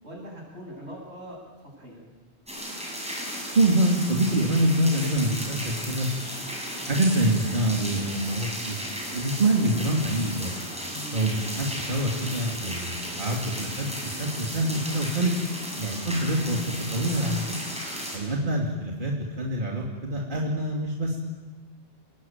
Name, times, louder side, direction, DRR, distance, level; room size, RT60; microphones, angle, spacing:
voice 1, 0.0-2.0 10.9-11.2, equal, 90° right, -2 dB, 8.3 m, -42 dB
sound 1, 2.5-18.2, equal, 5° right, 6.6 m, -35 dB
voice 2, 3.5-6.1 6.9-8.8 9.1-10.5 11.1-15.4 15.8-16.6 16.9-17.4 18.1-21.2, right 1 dB, 50° right, -1 dB, 3.0 m, -25 dB
27.0 x 20.0 x 9.1 m, 1.3 s
omnidirectional pair, 1.1 m